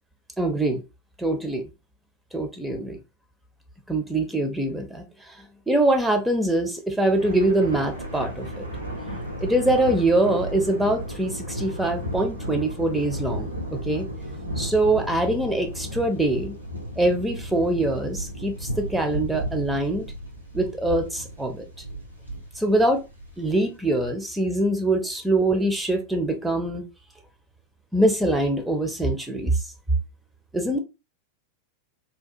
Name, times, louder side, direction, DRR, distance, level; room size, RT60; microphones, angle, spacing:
voice 1, 0.4-0.8 1.2-1.6 2.3-3.0 3.9-5.3 5.7-8.7 9.4-14.1 14.6-16.5 17.0-20.1 20.5-21.7 22.6-23.0 23.4-26.8 27.9-29.6 30.5-30.8, right 1 dB, 5° right, 0.5 m, -23 dB
Thunder, 7.0-23.6, equal, 85° right, 0.7 m, -34 dB
2.8 x 2.2 x 2.4 m
figure-of-eight pair, 90°, 0 cm